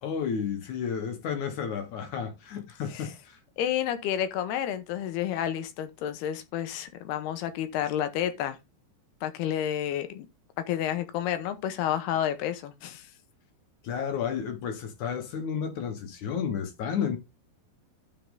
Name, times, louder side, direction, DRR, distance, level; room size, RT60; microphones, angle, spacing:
voice 1, 0.0-3.4 13.8-17.2, left 7 dB, 60° left, 2.3 m, -32 dB
voice 2, 3.6-8.6 9.2-10.3 10.7-13.1, left 10 dB, 75° left, 2.8 m, -30 dB
12.5 x 4.7 x 3.8 m
omnidirectional pair, 5.0 m